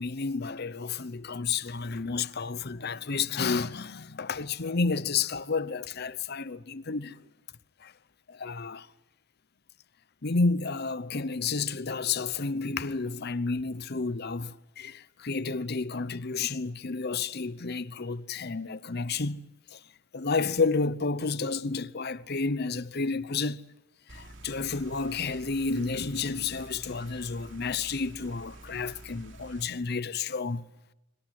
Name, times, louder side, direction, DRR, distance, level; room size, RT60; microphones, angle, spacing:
voice 1, 0.0-7.2 7.8-7.9 8.3-8.9 10.2-19.4 19.7-19.8 20.1-23.6 24.1-30.6, left 4 dB, 50° left, 0.8 m, -31 dB
sound 1, 24.1-29.6, right 2 dB, 60° right, 3.0 m, -49 dB
25.0 x 24.5 x 7.6 m
head